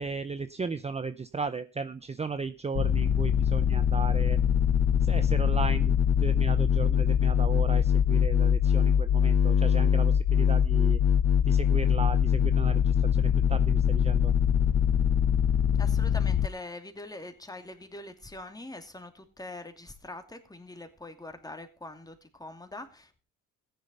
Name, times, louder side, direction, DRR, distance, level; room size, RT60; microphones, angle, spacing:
voice 1, 0.0-4.4 5.0-5.9 6.2-11.0 11.4-14.3, right 4 dB, 20° right, 13 dB, 0.7 m, -35 dB
sound 1, 2.7-16.5, left 8 dB, 55° left, 0.8 m, -23 dB
voice 2, 15.8-23.2, left 2 dB, 10° left, 7 dB, 2.8 m, -43 dB
15.0 x 10.5 x 5.5 m, 0.33 s
cardioid pair, 90°, 30 cm